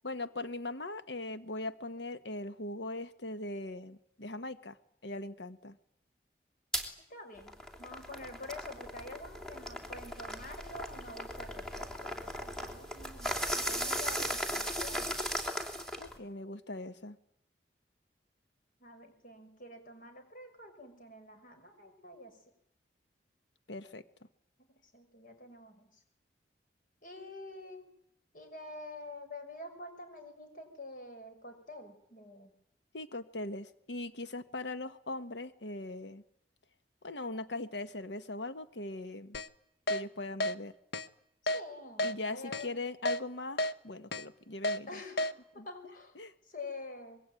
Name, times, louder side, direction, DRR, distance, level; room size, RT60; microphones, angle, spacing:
voice 1, 0.0-4.8 5.0-5.8 16.0-17.2 23.7-24.0 32.9-36.2 37.0-39.4 39.9-40.7 42.0-45.0 45.6-45.7 46.2-46.3, left 2 dB, 90° left, 11 dB, 1.3 m, -40 dB
sound 1, 6.7-6.9 7.4-16.2, equal, 5° left, 3.2 m, -37 dB
voice 2, 7.1-7.5 7.8-15.1 18.8-22.4 24.7-25.9 27.0-27.9 28.3-32.6 41.5-42.8 44.9-46.2 46.4-47.2, left 2 dB, 50° left, 6 dB, 6.0 m, -47 dB
Keyboard (musical), 39.3-39.5 39.9-40.0 40.4-40.5 40.9-41.1 41.5-41.6 42.0-42.1 42.5-42.7 43.1-43.2 43.6-43.7 44.1-44.2 44.6-44.8 45.2-45.3, left 1 dB, 65° left, 1.1 m, -31 dB
25.5 x 22.5 x 9.1 m, 0.71 s
head